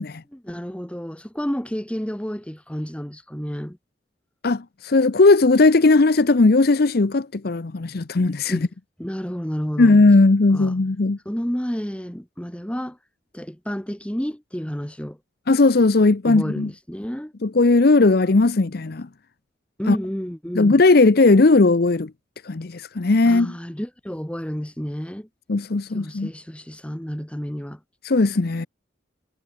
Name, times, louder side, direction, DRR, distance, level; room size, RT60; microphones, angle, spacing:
voice 1, 0.3-3.8 8.5-8.7 9.0-10.0 10.5-10.7 11.2-13.0 13.3-15.2 16.2-17.3 19.8-20.8 23.2-25.3 25.9-27.8, equal, 5° left, 1.4 m, -30 dB
voice 2, 4.4-8.7 9.8-11.2 15.5-16.7 17.4-19.1 19.9-20.0 20.5-22.1 22.4-23.5 25.5-26.3 28.0-28.7, left 3 dB, 55° left, 0.7 m, -17 dB
head